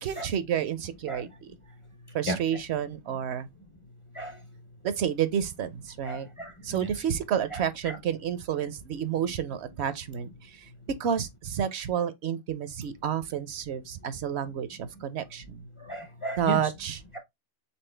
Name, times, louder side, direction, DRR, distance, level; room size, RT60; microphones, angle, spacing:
voice 1, 0.0-1.5 2.1-3.5 4.8-6.3 6.6-10.7 11.0-15.7 16.4-17.0, right 9 dB, 70° right, 0.8 m, -30 dB
voice 2, 6.1-6.8 7.5-7.6 15.8-16.6, right 1 dB, 35° left, 0.5 m, -34 dB
4.3 x 3.5 x 3.2 m
omnidirectional pair, 1.2 m